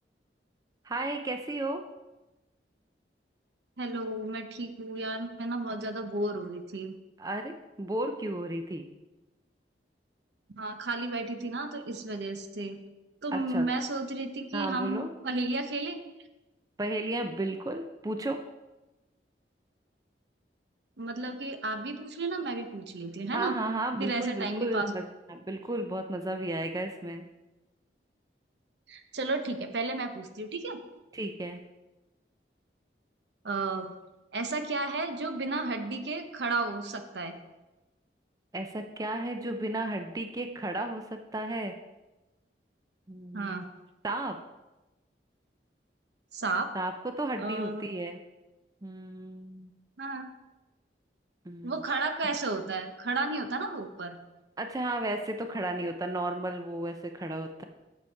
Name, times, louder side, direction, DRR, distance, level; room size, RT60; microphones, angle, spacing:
voice 1, 0.8-1.8 7.2-8.9 13.3-13.7 14.5-15.1 16.8-18.4 23.3-27.2 31.1-31.6 38.5-41.7 43.1-43.6 44.0-44.4 46.7-48.2 48.8-49.7 51.5-52.0 54.6-57.6, right 1 dB, 20° right, 6 dB, 0.4 m, -34 dB
voice 2, 3.8-7.0 10.6-12.8 13.2-16.0 21.0-23.6 24.0-24.9 28.9-30.8 33.4-33.9 34.3-37.3 43.3-43.6 46.3-46.7 47.4-47.9 50.0-50.3 51.6-54.2, right 3 dB, 75° right, 7 dB, 0.8 m, -33 dB
7.9 x 7.1 x 4.5 m, 1.1 s
head